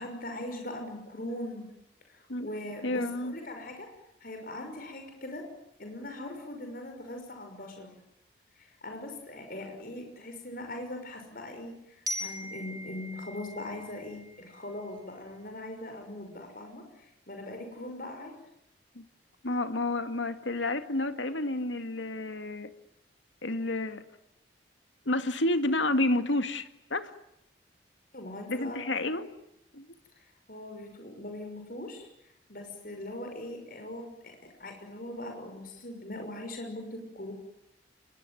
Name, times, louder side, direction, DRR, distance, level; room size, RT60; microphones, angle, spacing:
voice 1, 0.0-1.6 2.1-3.9 4.2-5.4 5.8-7.9 8.6-18.3 28.1-28.8 30.1-34.3 34.6-37.3, left 1 dB, 50° left, 4 dB, 6.0 m, -41 dB
voice 2, 2.8-3.3 19.0-19.1 19.4-22.7 23.4-24.0 25.1-27.1 28.5-29.3 29.7-29.9, left 2 dB, 80° left, 9 dB, 2.2 m, -30 dB
Glockenspiel, 12.1-14.9, equal, 20° right, 4.5 m, -40 dB
27.0 x 22.5 x 9.4 m, 0.82 s
head